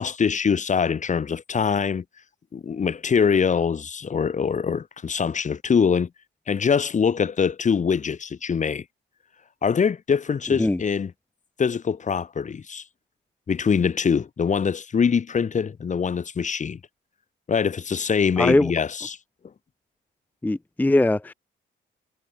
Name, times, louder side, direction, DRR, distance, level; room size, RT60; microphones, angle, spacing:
voice 1, 0.0-2.0 2.5-6.1 6.5-8.8 9.6-11.1 11.6-12.8 13.5-16.8 17.5-19.2, left 6 dB, 40° left, 1.4 m, -23 dB
voice 2, 18.4-18.7 20.4-21.3, left 2 dB, 10° left, 0.6 m, -21 dB
cardioid pair, 90°, 20 cm